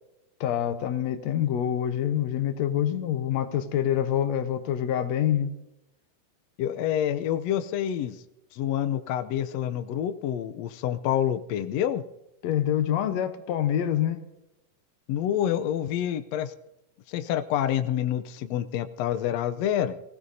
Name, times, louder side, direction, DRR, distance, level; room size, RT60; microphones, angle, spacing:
voice 1, 0.4-5.5 12.4-14.2, left 10 dB, 65° left, 2.0 m, -26 dB
voice 2, 6.6-8.2 8.5-12.0 15.1-16.5 17.1-20.0, left 10 dB, 85° left, 1.4 m, -27 dB
25.0 x 16.5 x 2.8 m
omnidirectional pair, 3.9 m